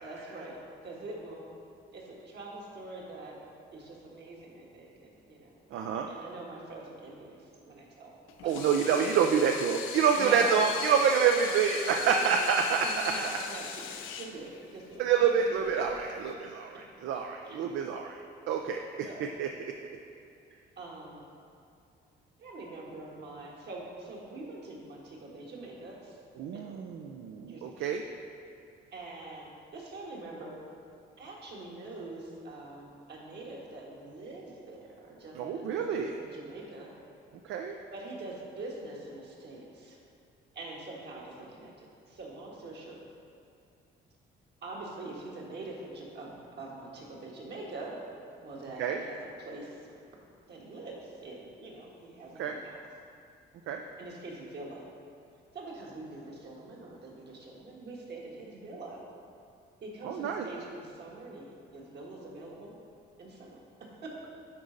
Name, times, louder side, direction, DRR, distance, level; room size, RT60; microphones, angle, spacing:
voice 1, 0.0-0.6 0.8-1.5 1.9-3.4 3.7-5.5 6.1-7.4 7.6-8.2 8.4-8.5 10.2-10.7 12.1-12.3 12.8-15.0 17.4-17.6 19.0-19.3 20.8-21.2 22.4-26.2 26.5-26.7 27.4-27.9 28.9-29.5 29.7-30.6 31.2-36.9 37.5-40.0 40.5-43.0 44.6-48.0 48.4-50.0 50.5-52.8 54.0-54.9 55.5-59.0 59.8-62.7 63.2-64.3, right 2 dB, 60° right, -3 dB, 1.6 m, -44 dB
voice 2, 5.7-6.1 8.5-13.1 15.0-18.2 18.5-19.1 19.4-19.7 26.4-28.0 35.4-36.1 37.5-37.8 48.8-49.0 52.4-52.6 53.7-53.8 60.0-60.5, right 6 dB, 75° right, 3 dB, 0.4 m, -27 dB
Water tap faucet / Sink (filling or washing), 8.3-16.3, left 8 dB, 85° left, 0.5 m, -40 dB
10.0 x 4.1 x 3.9 m, 2.5 s
cardioid pair, 90°, 20 cm